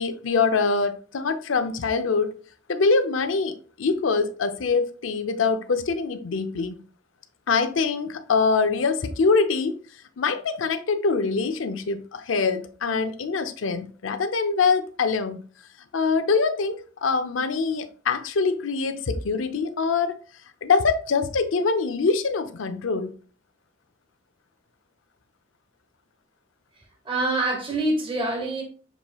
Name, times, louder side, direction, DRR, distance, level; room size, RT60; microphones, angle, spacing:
voice 1, 0.0-2.3 2.7-6.8 7.5-9.8 10.2-15.4 15.9-20.2 20.6-23.1, left 4 dB, 85° left, 0.6 m, -24 dB
voice 2, 27.0-28.6, right 2 dB, 25° right, 1.0 m, -25 dB
6.8 x 3.0 x 2.3 m
head